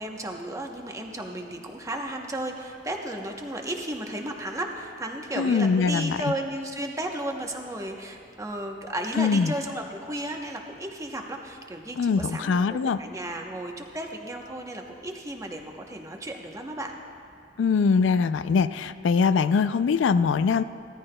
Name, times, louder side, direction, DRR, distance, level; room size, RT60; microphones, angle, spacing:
voice 1, 0.0-16.9, right 1 dB, 15° right, 2 dB, 0.8 m, -34 dB
voice 2, 5.4-6.3 9.2-9.5 12.0-13.0 17.6-20.6, left 5 dB, 85° left, 12 dB, 0.3 m, -22 dB
17.0 x 14.0 x 2.2 m, 2.3 s
head